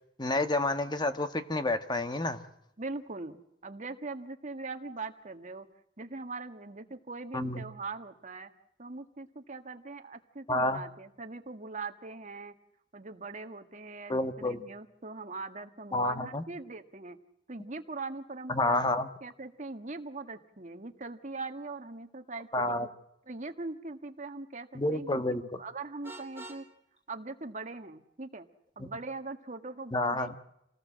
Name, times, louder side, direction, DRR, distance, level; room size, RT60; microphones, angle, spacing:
voice 1, 0.2-2.4 7.3-7.7 10.5-10.8 14.1-14.6 15.9-16.4 18.5-19.1 22.5-22.9 24.7-25.4 28.8-28.9 29.9-30.4, left 2 dB, 25° left, 9 dB, 1.4 m, -29 dB
voice 2, 2.8-5.7 6.0-8.5 8.8-12.5 12.9-17.2 17.5-18.9 19.2-22.9 23.3-26.6 27.1-28.5 28.7-30.4, right 3 dB, 45° right, 7 dB, 1.7 m, -41 dB
Vehicle horn car horn honking, 26.0-26.7, right 1 dB, 15° right, 2.8 m, -45 dB
27.5 x 18.5 x 7.5 m, 0.81 s
head